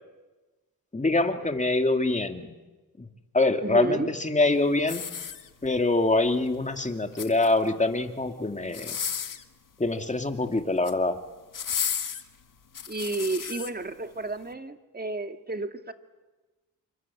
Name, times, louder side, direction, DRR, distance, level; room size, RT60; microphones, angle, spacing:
voice 1, 0.9-2.5 3.0-3.1 3.3-5.0 5.6-9.0 9.8-11.2, left 2 dB, 20° left, 6 dB, 2.5 m, -25 dB
voice 2, 3.6-4.1 12.9-15.9, right 3 dB, 25° right, 7 dB, 2.1 m, -31 dB
sound 1, 4.8-5.8 6.9-7.7 8.7-9.5 10.6-11.0 11.5-13.7 14.3-14.4, left 7 dB, 60° left, 1.8 m, -33 dB
28.0 x 24.5 x 8.6 m, 1.2 s
cardioid pair, 85°, 35 cm